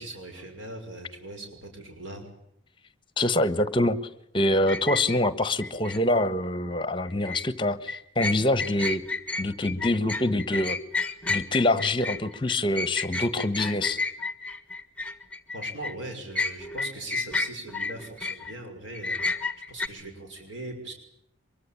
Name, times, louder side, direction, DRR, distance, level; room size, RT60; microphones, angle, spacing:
voice 1, 0.0-2.2 15.5-20.9, right 2 dB, 75° right, 4 dB, 6.1 m, -40 dB
voice 2, 3.2-4.0 4.3-9.0 9.4-10.8 11.3-14.0, left 1 dB, 25° left, 14 dB, 1.3 m, -25 dB
sound 1, 4.7-6.0 7.1-7.5 7.9-16.0 16.4-18.5 18.9-19.9, left 3 dB, 5° left, 1.6 m, -31 dB
24.5 x 23.0 x 8.8 m, 0.75 s
head